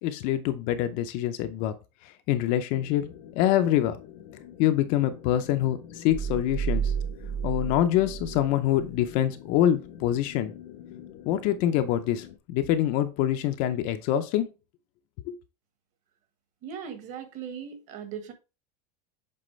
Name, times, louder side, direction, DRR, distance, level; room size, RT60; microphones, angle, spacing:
voice 1, 0.0-1.7 2.0-4.0 4.6-6.9 7.4-10.5 11.2-14.5 15.3-15.4, left 12 dB, 40° left, 0.5 m, -25 dB
sound 1, 2.7-12.4, left 10 dB, 90° left, 1.0 m, -46 dB
sound 2, 6.1-9.1, right 8 dB, 10° right, 0.4 m, -31 dB
voice 2, 16.6-18.3, right 7 dB, 35° right, 1.2 m, -38 dB
7.6 x 4.1 x 3.1 m
supercardioid pair, 180°, 21 cm